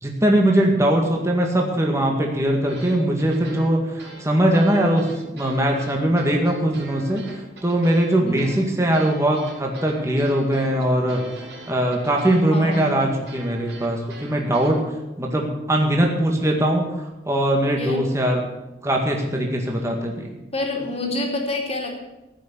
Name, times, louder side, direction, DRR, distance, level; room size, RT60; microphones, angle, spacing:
voice 1, 0.0-7.2 7.6-11.3 11.7-14.7 15.2-18.5 18.8-20.3, right 1 dB, 15° right, 0 dB, 1.9 m, -21 dB
sound 1, 2.7-14.8, right 2 dB, 70° right, 4.5 m, -42 dB
voice 2, 8.2-8.5 12.5-13.1 17.8-18.0 20.5-21.9, left 2 dB, 35° left, 1 dB, 2.8 m, -27 dB
15.0 x 6.4 x 9.5 m, 0.99 s
head